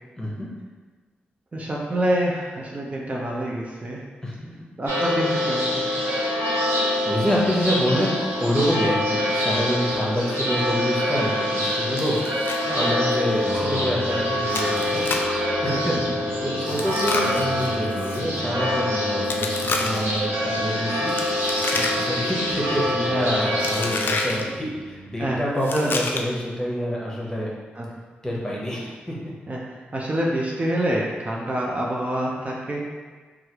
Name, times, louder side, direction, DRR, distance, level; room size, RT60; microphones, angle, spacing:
voice 1, 0.2-0.5 4.2-4.5 7.0-15.1 15.6-15.9 16.4-21.1 22.0-27.5 28.2-29.3, equal, 15° left, -5 dB, 0.9 m, -27 dB
voice 2, 1.5-4.0 4.8-5.9 15.7-16.2 16.8-16.9 17.2-17.4 21.7-22.0 23.1-23.5 25.2-25.4 25.7-26.0 27.8-27.9 29.5-32.8, right 1 dB, 35° right, -3 dB, 0.5 m, -27 dB
sound 1, 4.9-24.4, left 1 dB, 85° right, 0.7 m, -25 dB
Chewing mastication, 12.0-12.6 12.9-13.0 13.5-13.6 14.5-15.4 16.7-18.2 19.2-20.2 21.1-22.2 22.5-22.9 23.6-24.4 25.6-26.4, left 3 dB, 60° left, 0.4 m, -29 dB
sound 2, 13.4-25.4, right 1 dB, 60° right, 1.1 m, -40 dB
3.1 x 2.4 x 2.9 m, 1.4 s
cardioid pair, 55°, 4 cm